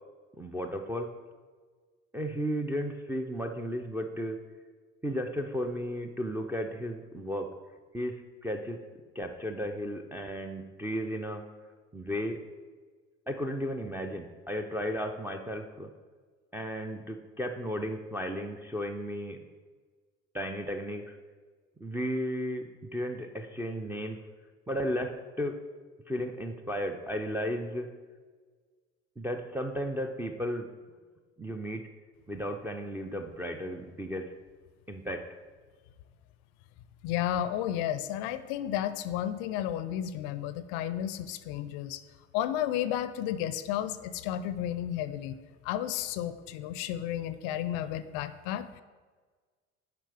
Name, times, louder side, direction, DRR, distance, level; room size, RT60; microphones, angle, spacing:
voice 1, 0.4-1.1 2.1-4.4 5.0-7.5 7.9-8.2 8.4-8.8 9.2-11.4 11.9-12.4 13.3-15.9 16.5-19.4 20.3-21.0 21.8-22.6 22.9-24.2 24.7-25.6 26.1-27.9 29.2-30.7 31.4-31.8 32.3-34.3 34.9-35.3, equal, 5° right, 2 dB, 0.4 m, -34 dB
voice 2, 37.0-42.0 42.3-45.4 45.6-48.8, left 11 dB, 50° left, 13 dB, 0.5 m, -32 dB
10.5 x 5.0 x 3.4 m, 1.5 s
figure-of-eight pair, 60°, 38 cm